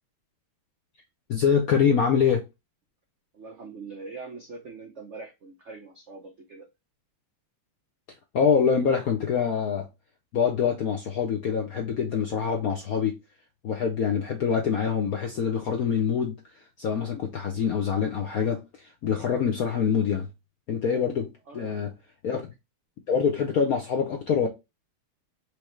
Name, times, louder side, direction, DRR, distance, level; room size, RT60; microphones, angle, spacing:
voice 1, 1.3-2.4 8.3-9.9 10.3-13.1 13.6-20.3 20.7-21.9 22.2-22.5 23.1-24.5, left 7 dB, 70° left, 0.8 m, -25 dB
voice 2, 3.3-6.7 21.5-22.0, right 4 dB, 75° right, 0.6 m, -43 dB
4.9 x 2.9 x 3.1 m
omnidirectional pair, 2.3 m